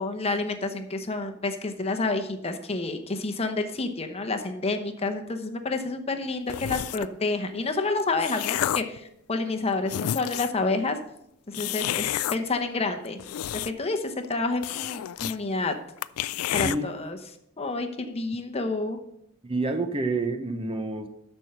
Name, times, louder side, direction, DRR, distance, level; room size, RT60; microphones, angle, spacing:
voice 1, 0.0-11.0 11.5-13.2 13.6-15.7 16.5-17.2 17.6-19.0, left 3 dB, 30° left, 5 dB, 0.9 m, -29 dB
sound 1, 6.5-7.2 7.8-9.0 9.5-9.6 9.8-10.6 11.5-12.4 13.0-13.9 14.2-14.3 14.6-15.4 15.7-15.8 16.0-16.8, left 12 dB, 85° left, 0.3 m, -30 dB
voice 2, 19.4-21.1, right 3 dB, 25° right, 8 dB, 0.7 m, -28 dB
12.5 x 4.5 x 6.6 m, 0.78 s
head